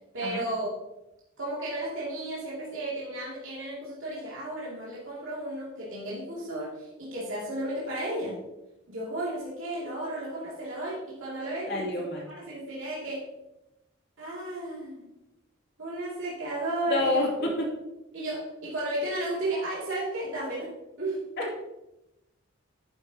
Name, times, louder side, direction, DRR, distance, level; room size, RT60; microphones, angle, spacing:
voice 1, 0.1-0.7 1.4-8.4 8.9-11.9 12.3-13.3 14.2-15.1 15.8-17.2 18.1-20.7 21.0-21.2, right 1 dB, 65° right, -7 dB, 2.6 m, -33 dB
voice 2, 11.7-12.2 16.9-17.7 21.4-21.6, left 2 dB, 50° left, -2 dB, 2.6 m, -28 dB
11.0 x 7.8 x 2.9 m, 0.93 s
head